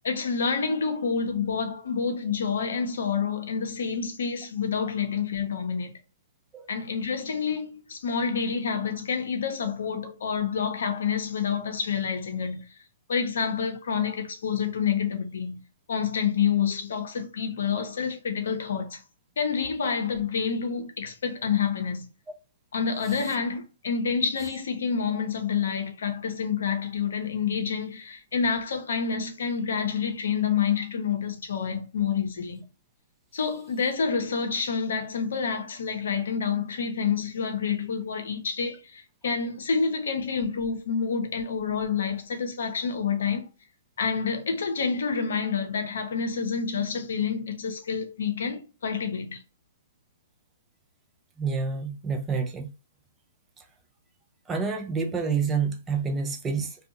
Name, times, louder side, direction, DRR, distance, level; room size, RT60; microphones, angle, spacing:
voice 1, 0.0-5.9 6.7-12.6 13.1-15.6 15.9-19.0 19.4-22.1 22.7-32.6 33.3-43.5 44.0-49.4, left 6 dB, 70° left, 0.7 m, -28 dB
voice 2, 51.4-52.7 54.5-56.8, right 5 dB, 15° right, 0.5 m, -28 dB
2.6 x 2.4 x 2.5 m
hypercardioid pair, 125°, 0 cm